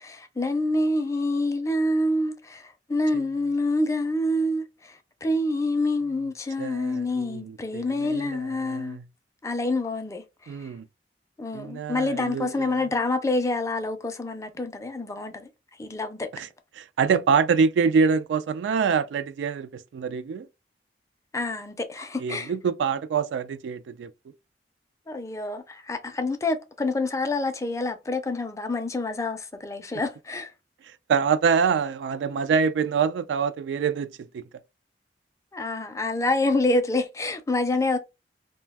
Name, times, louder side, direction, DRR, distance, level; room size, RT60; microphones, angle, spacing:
voice 1, 0.0-9.0 9.4-10.7 11.4-15.5 15.8-16.3 21.3-22.5 25.1-30.5 35.5-38.0, left 2 dB, 20° left, 0.4 m, -27 dB
voice 2, 6.6-9.0 10.5-10.9 11.5-12.7 16.3-16.5 16.8-20.5 22.2-24.1 31.1-34.4, right 6 dB, 85° right, 0.3 m, -25 dB
2.6 x 2.1 x 3.3 m
head